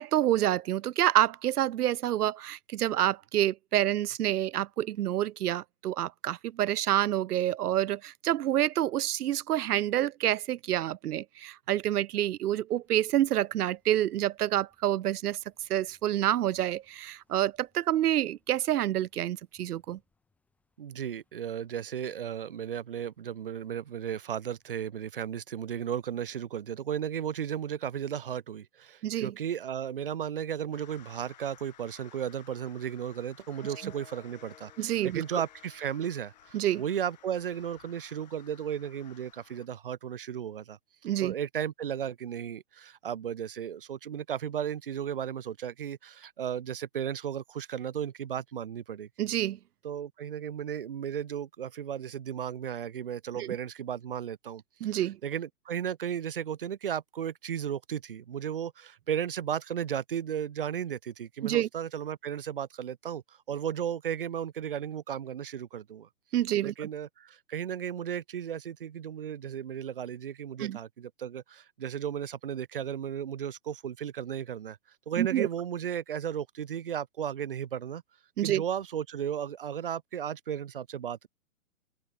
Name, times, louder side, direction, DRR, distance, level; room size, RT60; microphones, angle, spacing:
voice 1, 0.0-15.4 15.7-20.0 29.0-29.3 34.8-35.4 36.5-36.8 41.0-41.3 49.2-49.6 53.4-53.5 54.8-55.2 61.4-61.7 66.3-66.7 70.6-70.8 75.2-75.5 78.4-78.6, right 12 dB, 85° right, 0.6 m, -28 dB
sound 1, 12.8-24.8, left 3 dB, 5° left, 6.8 m, -76 dB
voice 2, 20.8-40.8 41.2-49.1 49.8-66.1 66.6-74.8 75.1-78.0 78.4-81.3, right 9 dB, 40° right, 1.1 m, -35 dB
sound 2, 30.7-39.7, left 11 dB, 30° left, 1.8 m, -57 dB
sound 3, 33.6-37.5, left 7 dB, 55° left, 4.9 m, -57 dB
open air
hypercardioid pair, 175°, 44 cm